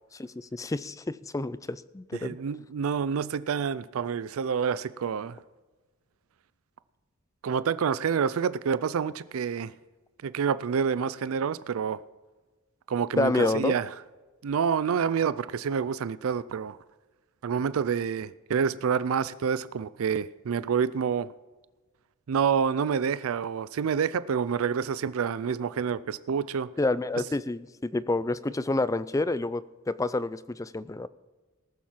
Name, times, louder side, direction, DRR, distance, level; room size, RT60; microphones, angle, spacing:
voice 1, 0.1-2.4 13.2-13.7 26.8-31.1, left 2 dB, 15° left, 0.4 m, -29 dB
voice 2, 2.2-5.4 7.4-9.7 10.2-12.0 12.9-13.9 14.4-16.8 17.4-21.3 22.3-26.7, right 6 dB, 75° right, 0.4 m, -28 dB
18.5 x 7.3 x 5.8 m
head